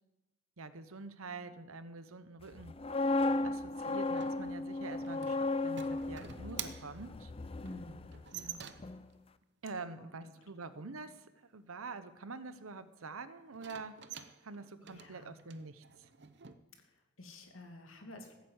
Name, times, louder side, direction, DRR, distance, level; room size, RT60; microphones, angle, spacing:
voice 1, 0.6-2.7 3.4-7.3 9.6-11.3 11.5-14.0 14.4-16.1, right 3 dB, 85° right, 13 dB, 0.9 m, -46 dB
sound 1, 2.6-8.5 8.8-9.1, left 2 dB, 25° left, 0.4 m, -35 dB
sound 2, 4.1-9.1 13.5-16.5, right 9 dB, 55° right, 0.8 m, -48 dB
voice 2, 7.6-8.6 9.9-10.3 14.8-15.6 16.8-18.3, left 1 dB, 75° left, 4 dB, 2.3 m, -51 dB
15.0 x 8.2 x 8.1 m, 1.0 s
head